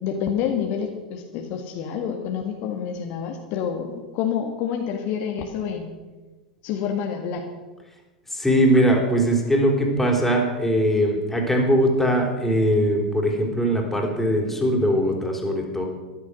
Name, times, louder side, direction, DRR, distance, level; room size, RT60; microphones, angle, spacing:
voice 1, 0.0-5.9 6.6-7.4, left 8 dB, 45° left, 3 dB, 1.8 m, -28 dB
voice 2, 8.3-15.9, equal, 5° left, 0 dB, 4.0 m, -21 dB
14.0 x 11.5 x 6.4 m, 1.2 s
figure-of-eight pair, 95°, 4 cm